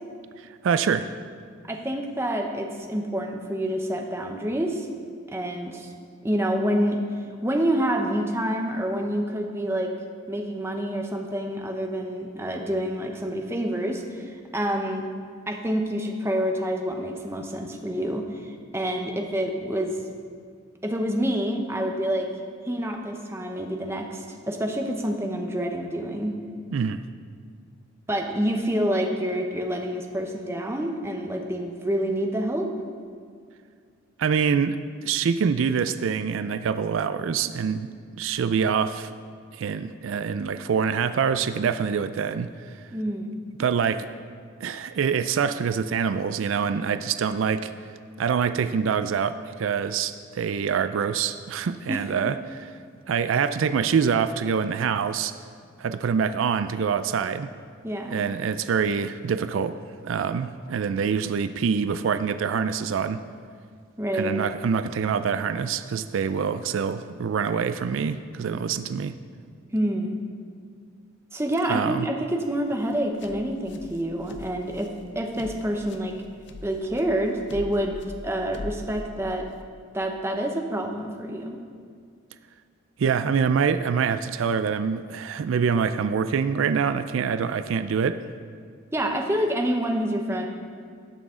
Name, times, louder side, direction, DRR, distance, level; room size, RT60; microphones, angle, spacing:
voice 1, 0.6-1.1 26.7-27.0 34.2-34.8 35.0-39.1 39.5-42.5 43.6-44.1 44.6-47.7 48.2-52.7 53.1-55.3 55.8-57.5 58.1-59.8 60.0-63.2 64.1-69.1 71.7-72.1 83.0-88.2, right 6 dB, 75° right, 12 dB, 0.4 m, -25 dB
voice 2, 1.7-4.9 5.3-5.9 6.2-7.0 7.4-9.9 10.3-15.1 15.5-20.0 20.8-22.3 22.6-26.3 28.1-32.7 42.9-43.4 51.9-52.0 57.8-58.2 64.0-64.3 69.7-70.2 71.3-74.9 75.1-76.1 76.6-78.0 78.2-79.5 79.9-81.6 88.9-90.5, equal, 10° right, 2 dB, 0.8 m, -27 dB
sound 1, 72.7-79.6, left 1 dB, 60° left, 0.6 m, -42 dB
18.5 x 6.2 x 3.7 m, 2.1 s
head